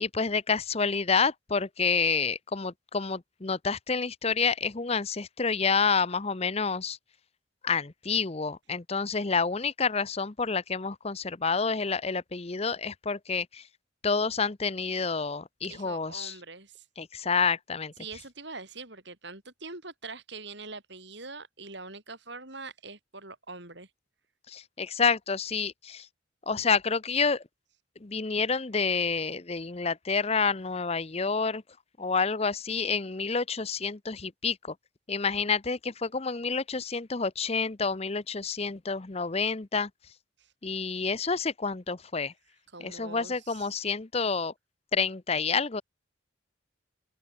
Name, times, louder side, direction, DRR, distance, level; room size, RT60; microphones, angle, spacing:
voice 1, 0.0-7.0 7.6-13.6 14.0-16.3 17.0-17.9 24.5-26.1 26.5-27.4 28.0-31.6 32.0-34.7 35.1-39.9 40.6-42.3 42.8-44.5 44.9-45.8, left 5 dB, 30° left, 0.7 m, -28 dB
voice 2, 15.7-16.8 18.0-23.9 40.4-40.5 42.7-43.7, right 3 dB, 55° right, 6.8 m, -43 dB
head